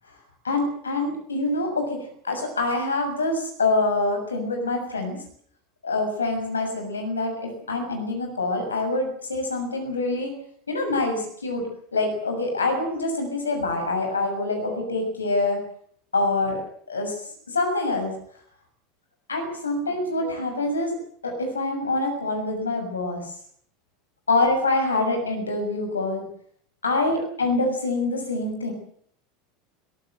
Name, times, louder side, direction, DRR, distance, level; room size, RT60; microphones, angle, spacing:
voice 1, 0.4-2.0 2.2-5.2 5.8-10.3 10.7-15.6 16.1-17.2 17.5-18.1 19.3-20.9 21.2-23.2 24.3-26.2 26.8-28.7, left 2 dB, 90° left, 4 dB, 6.7 m, -25 dB
23.0 x 18.0 x 7.9 m, 0.63 s
hypercardioid pair, 80°, 0 cm